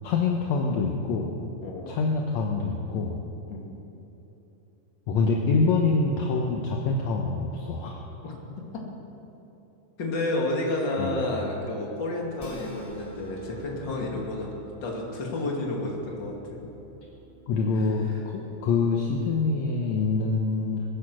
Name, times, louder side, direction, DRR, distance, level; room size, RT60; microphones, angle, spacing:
voice 1, 0.0-1.4 1.9-3.2 5.1-8.0 11.0-11.2 14.1-14.2 17.5-20.8, left 4 dB, 65° left, 1 dB, 2.1 m, -25 dB
voice 2, 1.6-2.0 3.5-3.8 8.2-8.3 8.7-8.8 10.0-14.5 14.8-16.4 17.8-17.9, left 2 dB, 35° left, -1 dB, 2.7 m, -30 dB
sound 1, 12.4-18.8, equal, 15° left, 1.7 m, -48 dB
22.0 x 10.0 x 6.3 m, 3.0 s
omnidirectional pair, 3.8 m